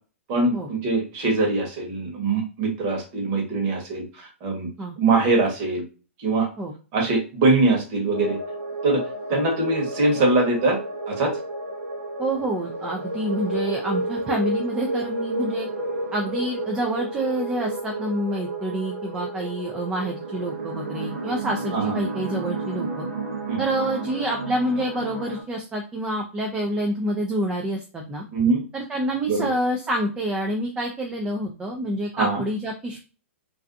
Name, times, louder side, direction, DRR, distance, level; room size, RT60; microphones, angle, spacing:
voice 1, 0.3-4.7 5.0-5.8 6.2-6.5 6.9-8.4 8.8-9.0 9.3-10.8 11.1-11.3 21.7-21.9 23.5-23.6 28.3-28.6 29.3-29.5 32.1-32.4, right 3 dB, 40° right, 0 dB, 1.1 m, -22 dB
sound 1, 8.1-25.4, right 2 dB, 70° right, 0.7 m, -31 dB
voice 2, 12.2-15.7 16.1-23.1 23.6-28.2 28.7-33.0, right 1 dB, 10° right, 1 dB, 0.3 m, -27 dB
2.5 x 2.2 x 2.5 m, 0.34 s
hypercardioid pair, 130°, 7 cm